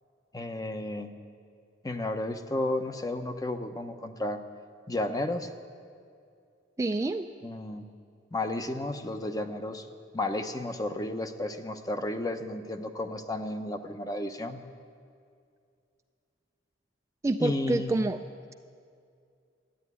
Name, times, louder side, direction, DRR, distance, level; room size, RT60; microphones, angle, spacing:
voice 1, 0.3-1.1 1.8-4.4 4.9-5.5 7.4-7.9 8.3-9.9 10.1-14.6 17.4-18.0, left 1 dB, 20° left, 7 dB, 0.7 m, -32 dB
voice 2, 6.8-7.3 17.2-18.2, right 2 dB, 15° right, 6 dB, 0.3 m, -27 dB
13.0 x 9.0 x 9.6 m, 2.3 s
head